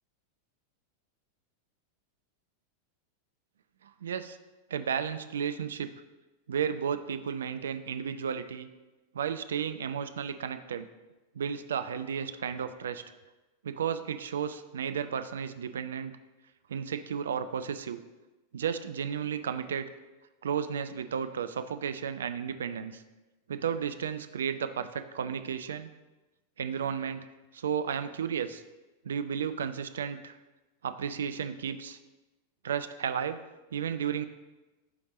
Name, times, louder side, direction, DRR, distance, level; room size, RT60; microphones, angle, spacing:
voice 1, 3.8-4.4 4.7-5.9 6.5-8.7 9.1-10.9 11.3-13.0 13.6-16.1 16.7-18.0 18.5-19.9 20.4-23.0 23.5-25.9 26.6-27.2 27.5-28.6 29.0-30.4 30.8-32.0 32.6-33.4 33.7-34.3, right 7 dB, 65° right, 10 dB, 0.4 m, -33 dB
9.6 x 3.4 x 4.0 m, 1.1 s
figure-of-eight pair, 90°, 0 cm